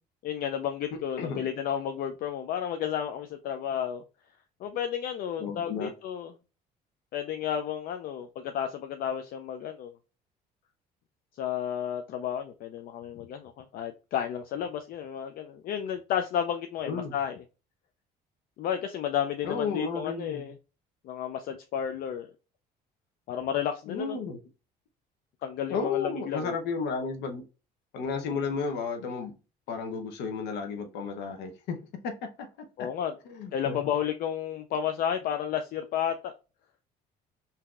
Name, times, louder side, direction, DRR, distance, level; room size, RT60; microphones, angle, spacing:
voice 1, 0.2-4.0 4.6-6.3 7.1-9.9 11.3-17.4 18.6-20.5 21.0-22.3 23.3-24.2 25.4-26.5 32.8-33.1 33.5-36.3, left 9 dB, 60° left, 0.4 m, -32 dB
voice 2, 0.9-1.4 5.4-5.9 16.9-17.2 19.4-20.5 23.9-24.4 25.7-27.4 27.9-29.4 29.7-31.8 32.0-32.9 33.3-33.9, left 5 dB, 80° left, 0.8 m, -33 dB
3.7 x 2.7 x 2.4 m
cardioid pair, 95°, 17 cm